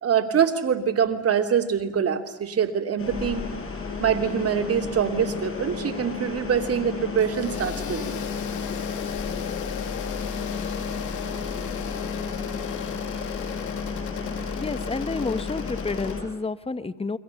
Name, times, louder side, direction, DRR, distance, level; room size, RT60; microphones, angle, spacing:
voice 1, 0.0-3.5 4.0-8.2, right 8 dB, 50° right, 5 dB, 2.9 m, -24 dB
sound 1, 3.0-16.2, left 5 dB, 45° left, 7.0 m, -32 dB
sound 2, 7.3-16.1, left 10 dB, 80° left, 2.2 m, -37 dB
voice 2, 14.5-17.2, left 3 dB, 20° left, 13 dB, 1.3 m, -30 dB
30.0 x 22.5 x 7.1 m, 1.0 s
cardioid pair, 90°, 30 cm